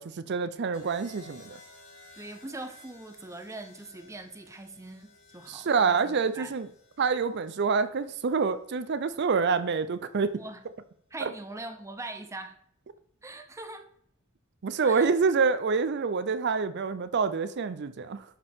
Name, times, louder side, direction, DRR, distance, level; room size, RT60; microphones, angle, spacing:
voice 1, 0.0-1.6 5.5-6.7 7.0-10.4 11.2-11.3 14.6-18.2, right 5 dB, 55° right, 0.5 m, -27 dB
sound 1, 0.7-8.9 10.1-10.5, left 2 dB, 60° left, 2.9 m, -55 dB
voice 2, 2.1-6.5 10.3-10.6 11.1-12.6 13.2-13.9 14.8-15.1, right 2 dB, 15° right, 0.7 m, -42 dB
11.0 x 5.2 x 3.6 m
head